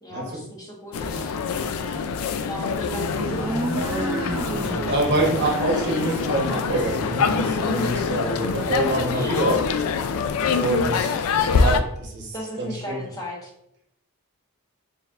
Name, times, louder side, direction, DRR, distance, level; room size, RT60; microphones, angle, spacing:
voice 1, 0.0-2.0 2.5-3.5 9.1-9.5 12.3-13.5, equal, 15° left, -2 dB, 0.9 m, -36 dB
sound 1, 0.9-11.8, left 5 dB, 70° left, 0.3 m, -25 dB
sound 2, 2.7-9.5, right 1 dB, 10° right, 0.4 m, -31 dB
voice 2, 4.9-9.6 10.6-11.2 11.5-13.0, right 2 dB, 50° right, -1 dB, 1.0 m, -26 dB
4.2 x 3.5 x 2.4 m, 0.77 s
head